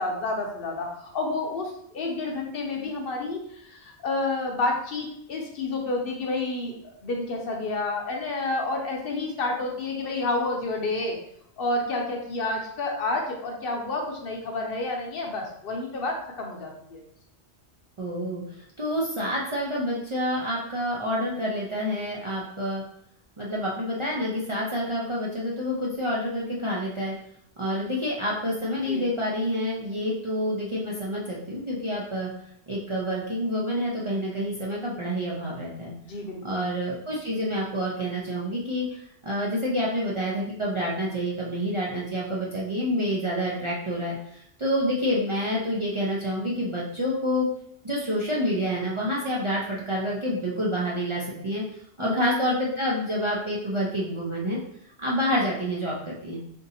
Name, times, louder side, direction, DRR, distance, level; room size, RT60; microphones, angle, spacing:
voice 1, 0.0-11.2 11.6-17.0 28.9-29.0 36.1-36.6 52.0-52.2, left 2 dB, 60° left, 1 dB, 0.8 m, -30 dB
voice 2, 18.0-22.8 23.4-27.1 27.6-32.3 32.7-35.9 36.4-47.5 47.8-51.6 52.0-54.6 55.0-56.4, equal, 40° right, -5 dB, 0.4 m, -28 dB
3.8 x 2.6 x 2.7 m, 0.70 s
omnidirectional pair, 1.1 m